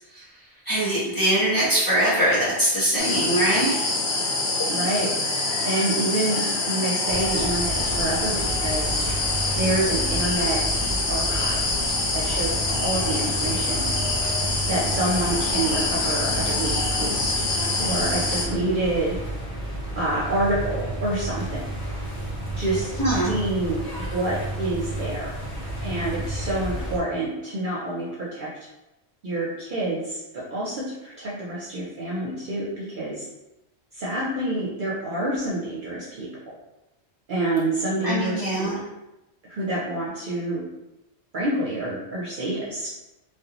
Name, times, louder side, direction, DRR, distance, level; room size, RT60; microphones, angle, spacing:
voice 1, 0.6-3.9 23.0-23.4 38.0-38.8, right 1 dB, 20° left, -10 dB, 0.9 m, -22 dB
sound 1, 3.0-18.5, left 3 dB, 70° left, 0.8 m, -25 dB
voice 2, 4.7-5.2 5.6-9.0 9.6-10.6 11.1-11.8 12.1-13.9 14.7-17.3 17.8-19.2 19.9-21.6 22.6-23.8 24.1-25.3 25.8-28.5 29.2-33.2 33.9-36.5 37.3-38.7 39.5-40.7 41.3-42.9, right 1 dB, 55° right, -7 dB, 0.6 m, -27 dB
sound 2, 7.1-27.0, right 1 dB, 40° left, 1.1 m, -31 dB
2.4 x 2.2 x 2.8 m, 0.95 s
omnidirectional pair, 1.2 m